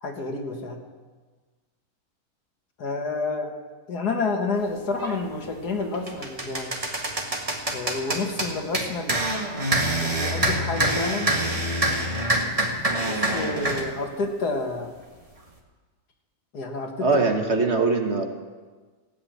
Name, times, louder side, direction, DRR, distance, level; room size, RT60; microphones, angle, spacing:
voice 1, 0.0-0.8 2.8-3.5 3.9-6.7 7.7-9.2 10.0-11.3 13.1-14.9 16.5-17.1, left 3 dB, 75° left, 3 dB, 2.2 m, -29 dB
sound 1, 5.0-5.2 5.7-13.9, right 1 dB, 20° right, 1.8 m, -26 dB
voice 2, 17.0-18.2, right 3 dB, 45° right, 4 dB, 1.5 m, -21 dB
16.0 x 8.4 x 9.3 m, 1.4 s
omnidirectional pair, 1.7 m